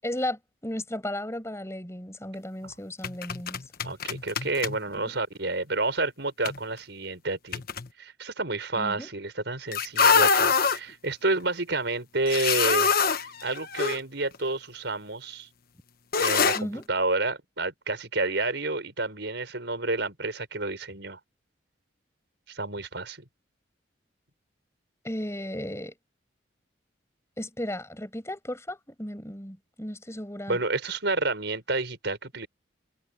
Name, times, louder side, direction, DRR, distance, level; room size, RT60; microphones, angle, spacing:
voice 1, 0.0-3.6 5.1-5.2 8.8-9.1 16.5-16.9 25.0-25.9 27.4-30.6, left 1 dB, 15° left, 7.1 m, -35 dB
sound 1, 3.0-4.8 6.5-6.6 7.5-7.9 9.7-10.8 12.2-14.0 14.3-14.4 16.1-16.6, left 5 dB, 50° left, 1.2 m, -24 dB
voice 2, 3.8-7.6 8.0-13.0 13.4-15.5 16.2-21.2 22.5-23.2 30.5-32.5, right 2 dB, 65° right, 6.0 m, -30 dB
head